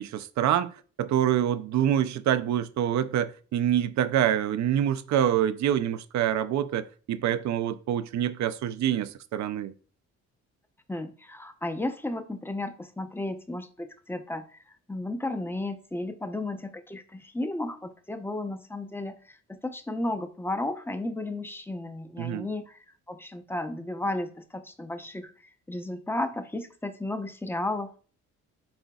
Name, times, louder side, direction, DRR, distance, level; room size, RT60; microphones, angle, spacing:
voice 1, 0.0-9.7 22.2-22.5, right 10 dB, 65° right, 0.6 m, -26 dB
voice 2, 10.9-28.1, left 2 dB, 5° left, 0.7 m, -34 dB
10.5 x 3.9 x 2.3 m
cardioid pair, 90°, 30 cm